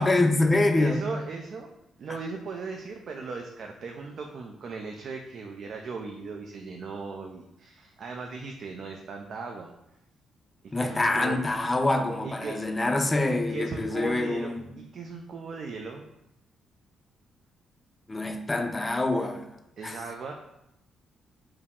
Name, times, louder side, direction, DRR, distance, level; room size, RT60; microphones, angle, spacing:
voice 1, 0.0-1.0 10.7-14.7 18.1-19.5 19.8-20.0, left 2 dB, 20° left, 6 dB, 0.4 m, -25 dB
voice 2, 0.8-1.7 2.0-9.7 10.6-11.4 12.2-12.6 13.5-16.0 19.8-20.3, right 4 dB, 60° right, 3 dB, 0.4 m, -38 dB
4.6 x 2.0 x 3.6 m, 0.88 s
cardioid pair, 95°, 0 cm